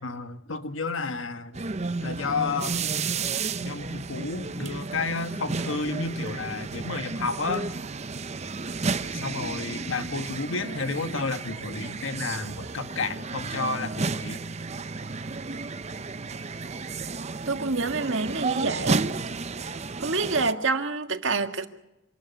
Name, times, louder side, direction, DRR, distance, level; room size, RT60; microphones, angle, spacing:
voice 1, 0.0-1.6 2.0-2.9 3.6-7.7 9.1-14.4, left 4 dB, 90° left, 10 dB, 1.4 m, -31 dB
sound 1, 1.5-20.5, right 4 dB, 35° right, 0.7 m, -32 dB
voice 2, 17.5-19.0 19.6-19.7 20.0-21.7, right 3 dB, 75° right, 7 dB, 1.7 m, -27 dB
26.5 x 13.0 x 8.0 m, 0.94 s
head